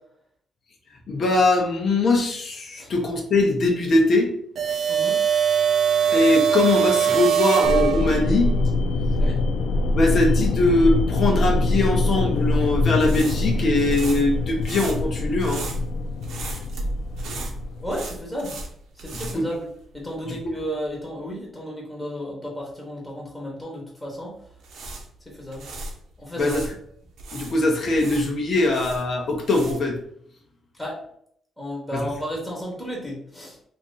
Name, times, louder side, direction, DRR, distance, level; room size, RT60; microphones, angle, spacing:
voice 1, 1.1-4.3 6.1-8.5 9.9-15.6 19.1-19.5 20.3-20.4 26.4-26.7 27.3-30.0 31.9-32.0, left 2 dB, 55° left, 0 dB, 0.7 m, -21 dB
sound 1, 4.6-8.5, right 8 dB, 65° right, 0.4 m, -21 dB
voice 2, 4.9-5.2 9.2-9.4 17.8-18.6 19.0-19.7 19.9-24.3 25.3-25.6 26.2-26.6 30.8-31.0 31.6-33.5, equal, 5° left, -3 dB, 1.0 m, -33 dB
sound 2, 7.6-18.2, left 2 dB, 90° left, 0.3 m, -24 dB
sound 3, 12.2-20.2 20.5-20.7 24.4-26.7 27.2-30.0, right 2 dB, 80° right, 0.7 m, -36 dB
2.9 x 2.5 x 3.7 m, 0.66 s
cardioid pair, 105°, 0 cm